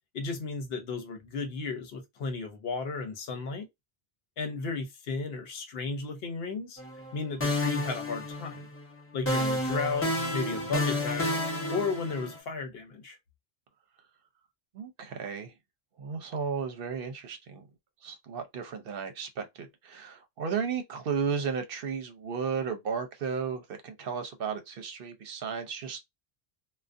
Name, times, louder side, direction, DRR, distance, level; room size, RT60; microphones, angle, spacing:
voice 1, 0.1-3.7 4.4-6.8 7.1-8.7 9.1-11.3 11.7-13.2, left 4 dB, 75° left, 0.9 m, -34 dB
sound 1, 6.8-7.1 7.4-8.8 9.3-12.4, left 1 dB, 15° left, 0.7 m, -30 dB
voice 2, 14.7-15.5 16.0-17.7 18.0-26.0, right 6 dB, 65° right, 0.8 m, -34 dB
2.4 x 2.2 x 2.5 m
omnidirectional pair, 1.0 m